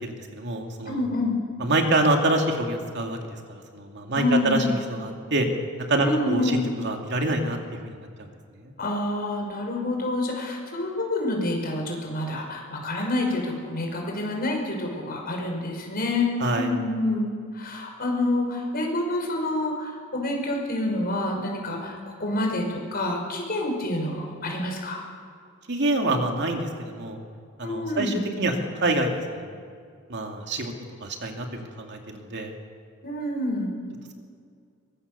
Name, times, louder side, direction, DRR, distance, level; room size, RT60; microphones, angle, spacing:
voice 1, 0.0-1.0 1.6-3.2 3.7-5.5 5.9-7.6 7.8-7.9 8.6-8.7 16.4-16.7 25.7-27.2 27.6-29.5 30.1-30.7 31.0-32.5, right 2 dB, 55° right, 3 dB, 2.5 m, -26 dB
voice 2, 0.9-1.4 4.1-4.7 6.0-6.6 8.8-25.0 27.6-28.3 33.0-33.7, left 2 dB, 45° left, 1 dB, 5.4 m, -27 dB
23.5 x 21.5 x 6.8 m, 2.2 s
head